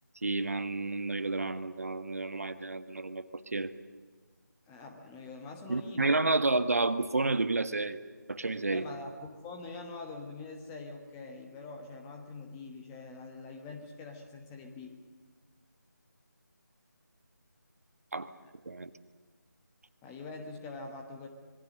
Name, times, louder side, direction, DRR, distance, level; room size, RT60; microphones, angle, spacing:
voice 1, 0.2-3.2 3.5-3.7 5.7-8.0 8.3-8.8 18.1-18.3 18.6-18.9, right 3 dB, 50° right, 11 dB, 1.3 m, -30 dB
voice 2, 4.7-6.4 8.7-15.0 18.2-18.5 20.0-21.3, left 3 dB, 10° left, 3 dB, 1.2 m, -44 dB
26.5 x 22.0 x 6.6 m, 1.5 s
figure-of-eight pair, 160°, 10 cm